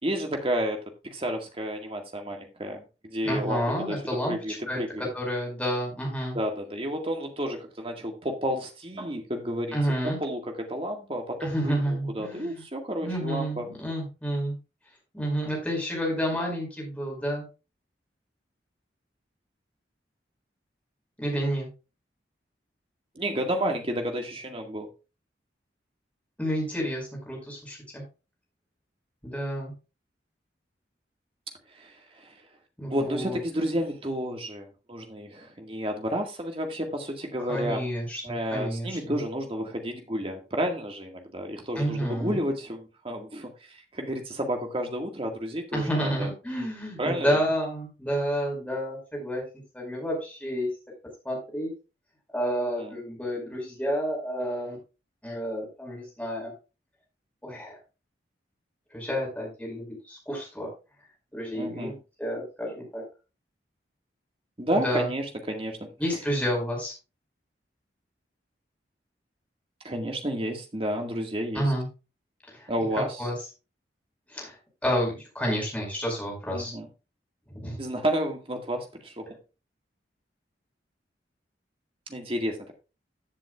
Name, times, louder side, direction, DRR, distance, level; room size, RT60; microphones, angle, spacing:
voice 1, 0.0-5.1 6.3-9.8 10.0-13.7 23.2-24.9 31.8-32.3 32.9-37.9 38.2-46.3 47.0-47.4 52.8-53.0 61.5-61.9 64.6-65.9 69.8-71.6 72.7-73.2 76.5-76.9 77.8-79.3 82.1-82.7, equal, 30° right, 3 dB, 1.9 m, -31 dB
voice 2, 3.2-6.4 9.7-10.2 11.4-12.6 13.0-14.6 15.1-17.5 21.2-21.7 26.4-28.0 29.2-29.7 32.8-33.4 37.5-39.2 41.7-42.4 45.7-49.4 49.7-50.7 51.2-51.7 52.3-54.8 55.2-56.5 57.4-57.8 58.9-60.7 61.3-63.0 64.7-65.1 66.0-66.9 71.5-71.9 72.5-72.7 73.2-73.3 74.3-74.6 74.8-76.7 77.5-77.8, equal, 10° left, -1 dB, 5.1 m, -30 dB
15.0 x 7.7 x 2.4 m, 0.30 s
head